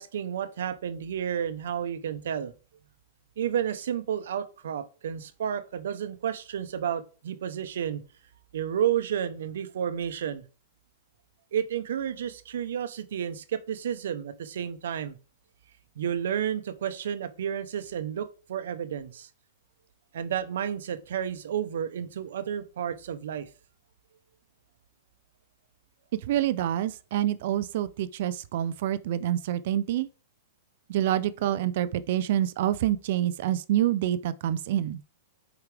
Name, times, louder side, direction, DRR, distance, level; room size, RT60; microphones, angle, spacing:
voice 1, 0.0-2.5 3.4-8.0 8.5-10.4 11.5-15.2 16.0-19.3 20.1-23.5, right 9 dB, 70° right, 0.8 m, -31 dB
voice 2, 26.3-30.1 30.9-35.0, right 12 dB, 45° right, 0.4 m, -27 dB
8.1 x 4.8 x 3.4 m
supercardioid pair, 180°, 0 cm